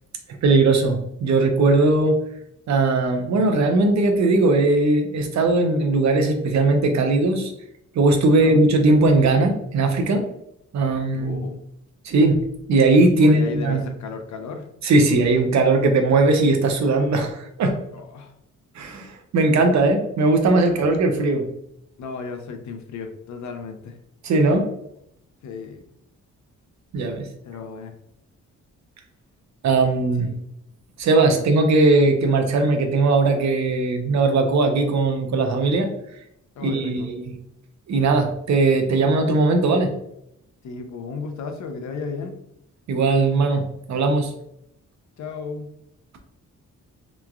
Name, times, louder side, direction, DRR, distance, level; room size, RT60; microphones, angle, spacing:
voice 1, 0.4-2.2 2.7-7.5 8.0-10.3 10.7-11.4 12.0-12.4 12.7-13.8 14.8-17.8 18.8-21.4 24.2-24.7 26.9-27.3 29.6-30.3 31.0-35.9 36.6-37.3 37.9-39.9 42.9-43.6 43.9-44.3, right 3 dB, 65° right, 5 dB, 0.5 m, -19 dB
voice 2, 11.1-11.6 13.2-14.7 17.9-18.3 20.8-21.0 22.0-24.0 25.4-25.9 27.4-27.9 30.2-30.4 31.3-31.4 36.6-37.1 40.6-42.4 45.2-45.7, left 4 dB, 65° left, 5 dB, 0.5 m, -34 dB
3.0 x 2.3 x 2.3 m, 0.76 s
wide cardioid pair, 150°, 31 cm